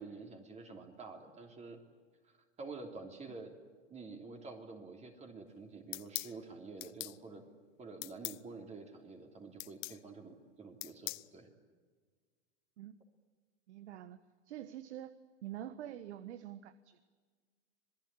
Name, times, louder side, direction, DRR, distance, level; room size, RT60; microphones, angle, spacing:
voice 1, 0.0-1.8 2.2-3.5 3.9-7.4 7.8-11.5, right 3 dB, 20° right, 3 dB, 3.1 m, -49 dB
sound 1, 5.9-6.3 6.8-7.2 8.0-8.4 9.6-10.0 10.8-11.3, left 26 dB, 40° left, 0.9 m, -41 dB
voice 2, 13.7-14.2 14.5-15.1 15.4-17.0, right 12 dB, 70° right, 13 dB, 1.4 m, -46 dB
27.0 x 19.0 x 9.7 m, 1.5 s
hypercardioid pair, 130°, 35 cm